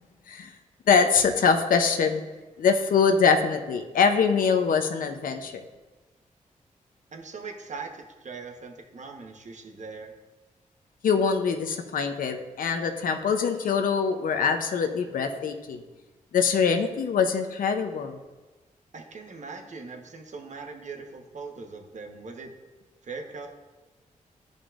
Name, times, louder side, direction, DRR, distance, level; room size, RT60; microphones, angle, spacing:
voice 1, 0.9-2.2 2.6-5.6 11.0-15.8 16.3-18.2, left 5 dB, 80° left, 6 dB, 0.6 m, -23 dB
voice 2, 7.1-10.1 18.9-22.5 23.0-23.5, right 4 dB, 60° right, 3 dB, 1.1 m, -40 dB
11.5 x 5.2 x 2.5 m, 1.2 s
cardioid pair, 55°, 14 cm